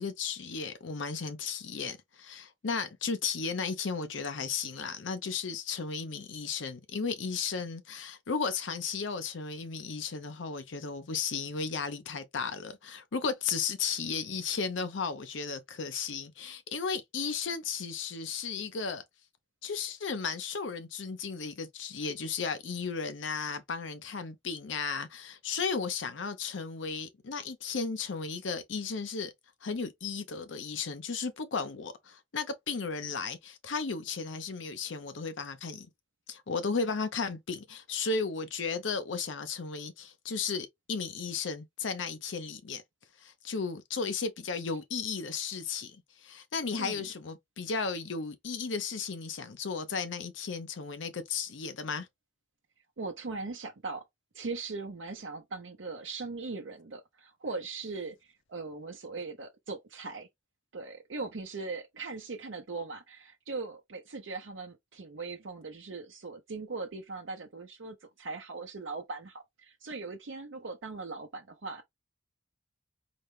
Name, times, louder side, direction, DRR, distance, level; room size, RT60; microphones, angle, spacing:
voice 1, 0.0-19.0 19.6-29.3 29.6-35.9 36.3-42.8 43.2-52.1, left 5 dB, 85° left, 0.7 m, -35 dB
voice 2, 46.8-47.1 53.0-54.0 54.3-60.3 60.7-71.8, right 3 dB, 85° right, 0.6 m, -40 dB
4.1 x 2.2 x 3.2 m
head